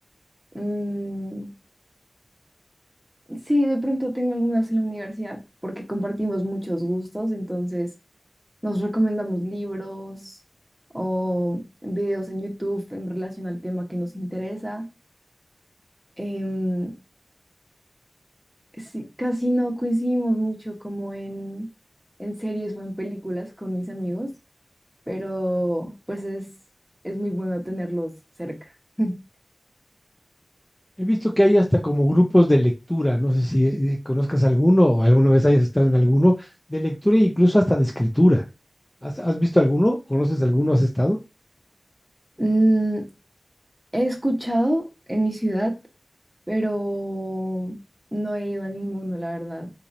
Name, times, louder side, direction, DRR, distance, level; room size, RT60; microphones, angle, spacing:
voice 1, 0.5-1.5 3.3-7.9 8.6-10.4 10.9-14.9 16.2-16.9 18.8-21.7 22.2-24.3 25.1-26.5 27.0-28.1 28.4-28.5 29.0-29.2 42.4-43.1 43.9-45.7 46.5-47.8 48.1-49.7, right 1 dB, 5° right, 0 dB, 1.1 m, -26 dB
voice 2, 31.0-38.4 39.0-41.2, equal, 15° left, 1 dB, 0.5 m, -19 dB
3.9 x 2.9 x 2.6 m, 0.27 s
wide cardioid pair, 75°, 0 cm